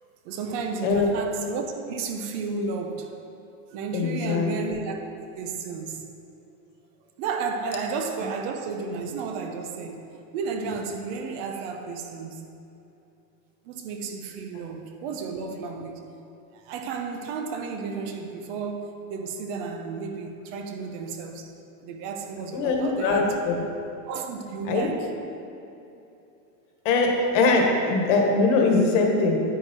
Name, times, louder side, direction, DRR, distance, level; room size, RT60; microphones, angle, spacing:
voice 1, 0.2-3.1 3.7-5.0 5.4-6.1 7.2-12.5 13.6-16.1 16.5-21.5 21.8-23.4 24.1-25.1, right 5 dB, 45° right, 1.0 m, -32 dB
voice 2, 3.9-4.5 22.5-23.6 24.7-24.9 26.9-29.4, left 3 dB, 55° left, 1.8 m, -22 dB
9.6 x 9.1 x 4.5 m
supercardioid pair, 165°, 44 cm